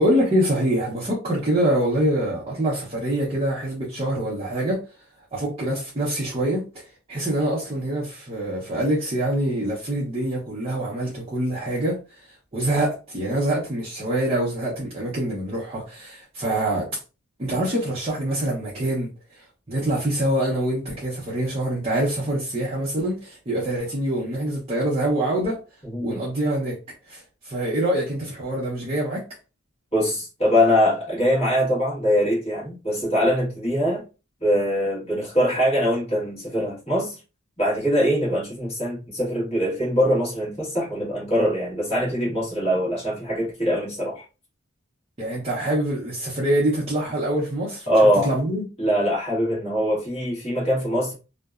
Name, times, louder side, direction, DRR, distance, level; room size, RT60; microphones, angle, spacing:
voice 1, 0.0-4.8 5.3-12.3 12.5-16.9 17.4-19.1 19.3-25.6 26.0-26.8 27.1-29.2 45.2-48.6, right 1 dB, 25° right, 0.6 m, -25 dB
voice 2, 25.8-26.2 29.9-34.0 34.4-37.2 37.6-44.2 47.9-48.3 48.8-51.1, equal, 30° left, 1.3 m, -22 dB
2.7 x 2.1 x 2.3 m
head